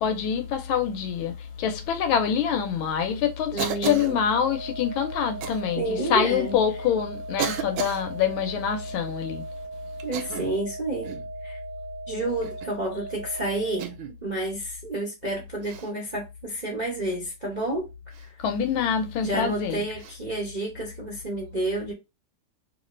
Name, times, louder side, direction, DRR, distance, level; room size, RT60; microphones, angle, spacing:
voice 1, 0.0-9.4 18.4-19.8, left 8 dB, 75° left, 1.4 m, -25 dB
voice 2, 3.5-4.2 5.8-6.6 10.0-11.2 11.4-11.6 12.1-17.9 18.2-18.3 19.2-21.9, right 2 dB, 35° right, 0.6 m, -30 dB
Cough, 3.6-4.2 5.4-5.6 6.5-6.6 7.4-8.0 10.0-10.6 11.0-11.3 12.4-12.8 13.8-14.2 15.6-15.9 18.1-18.3 20.0-20.2, right 8 dB, 80° right, 1.4 m, -33 dB
sound 1, 3.9-13.9, right 4 dB, 40° left, 0.5 m, -39 dB
3.2 x 2.7 x 3.0 m
omnidirectional pair, 2.4 m